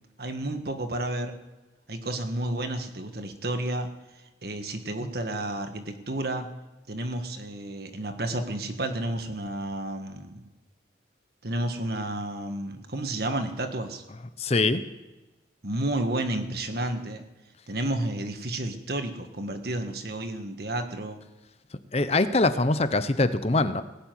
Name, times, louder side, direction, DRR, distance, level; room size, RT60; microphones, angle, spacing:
voice 1, 0.2-1.4 1.9-3.9 4.4-6.5 6.9-10.5 11.4-14.0 15.6-17.2 17.7-21.2, right 1 dB, 55° right, 7 dB, 1.6 m, -31 dB
voice 2, 14.4-14.8 21.9-23.8, left 2 dB, 35° left, 11 dB, 0.8 m, -23 dB
18.5 x 7.3 x 9.3 m, 1.1 s
head